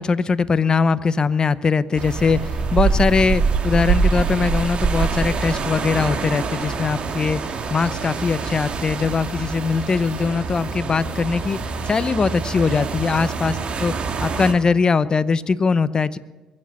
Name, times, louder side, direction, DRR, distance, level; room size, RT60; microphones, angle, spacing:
voice 1, 0.0-2.4 2.7-7.4 7.7-11.6 11.9-13.5 13.8-13.9 14.2-16.2, left 5 dB, 35° left, 16 dB, 0.7 m, -21 dB
sound 1, 2.0-14.5, right 5 dB, 50° right, 2.1 m, -25 dB
22.5 x 7.6 x 7.1 m, 1.2 s
supercardioid pair, 70°, 2 cm